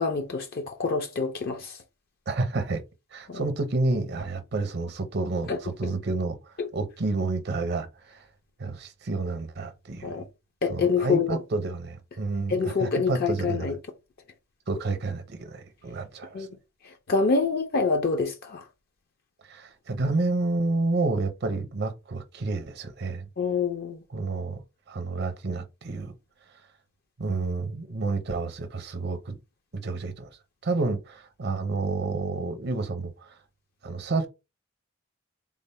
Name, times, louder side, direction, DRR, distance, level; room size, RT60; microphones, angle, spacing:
voice 1, 0.0-1.8 3.3-3.4 5.5-5.9 6.6-6.7 10.0-10.2 10.6-11.4 12.5-13.8 16.3-16.5 16.8-18.6 23.4-24.0, left 4 dB, 50° left, 0.4 m, -26 dB
voice 2, 2.3-2.8 3.1-6.4 6.7-8.2 8.6-10.3 10.7-13.7 14.7-16.5 19.5-23.3 24.1-24.6 24.9-26.1 27.2-29.4 29.7-30.3 30.6-33.4 33.8-34.3, right 3 dB, 55° right, 0.6 m, -29 dB
3.7 x 2.0 x 4.2 m
head